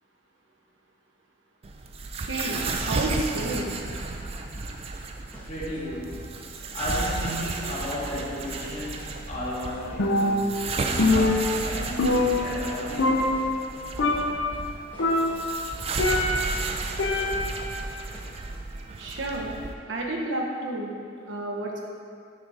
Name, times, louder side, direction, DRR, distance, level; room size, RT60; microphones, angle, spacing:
sound 1, 1.6-19.7, right 3 dB, 30° right, 0.3 m, -33 dB
voice 1, 2.1-3.7 19.0-19.5 19.9-20.9 21.3-21.8, right 2 dB, 70° right, -1 dB, 0.8 m, -31 dB
sound 2, 4.5-5.0 5.3-6.6 6.9-10.6 10.9-11.4 11.7-13.0 13.3-17.8 18.1-18.6, equal, 10° left, 0.7 m, -45 dB
voice 2, 5.5-6.3 6.7-13.2, left 1 dB, 30° left, -6 dB, 1.2 m, -34 dB
Percussion, 10.0-10.7 11.0-12.7 13.0-13.7 14.0-14.5 15.0-16.6 17.0-17.7, left 2 dB, 75° left, 0.6 m, -24 dB
6.4 x 4.0 x 4.8 m, 2.4 s
head